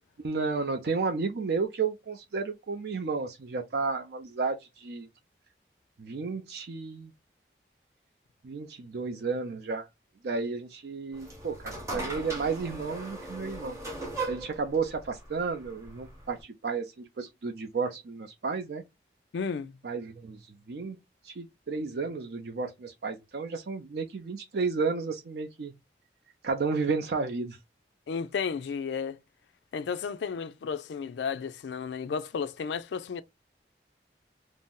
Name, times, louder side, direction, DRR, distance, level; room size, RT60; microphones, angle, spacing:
voice 1, 0.2-5.1 6.0-7.1 8.4-9.9 10.2-13.8 14.3-18.8 19.8-20.4 20.7-21.0 21.2-25.7 26.4-27.6, right 4 dB, 65° right, 0.4 m, -32 dB
sound 1, 11.1-16.4, right 2 dB, 15° right, 0.8 m, -38 dB
voice 2, 19.3-19.7 28.1-29.2 29.7-33.2, left 6 dB, 85° left, 0.3 m, -33 dB
2.6 x 2.0 x 3.6 m
head